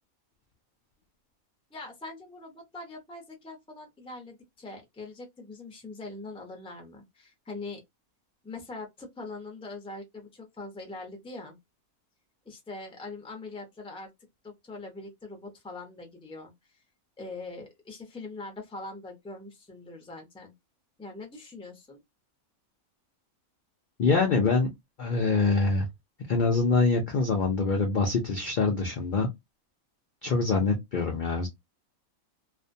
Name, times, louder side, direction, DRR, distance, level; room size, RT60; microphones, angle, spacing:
voice 1, 1.7-7.8 8.4-11.6 12.4-14.1 14.4-16.5 17.2-20.5 21.0-22.0, left 3 dB, 10° left, 0.3 m, -42 dB
voice 2, 24.0-24.7 25.0-25.9 26.3-29.3 30.2-31.5, left 3 dB, 80° left, 0.4 m, -24 dB
2.4 x 2.1 x 2.5 m
omnidirectional pair, 1.5 m